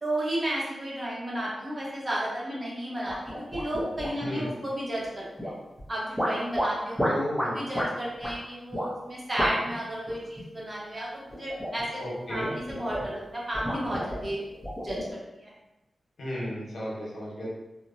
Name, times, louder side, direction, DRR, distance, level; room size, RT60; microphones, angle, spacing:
voice 1, 0.0-5.5 5.9-7.1 7.4-12.0 12.3-14.4 14.8-15.5, right 1 dB, 30° right, -6 dB, 0.8 m, -33 dB
sound 1, 3.1-4.4 5.4-5.8 6.2-7.9 8.2-8.3 8.7-8.9 9.4-9.8 10.1-10.4 11.3-11.9 12.3-13.2 13.5-15.1, equal, ahead, 0.7 m, -31 dB
voice 2, 4.2-4.5 7.0-7.6 12.0-12.5 16.2-17.5, equal, 70° left, -6 dB, 0.9 m, -33 dB
2.9 x 2.1 x 2.6 m, 0.98 s
wide cardioid pair, 105°, 0 cm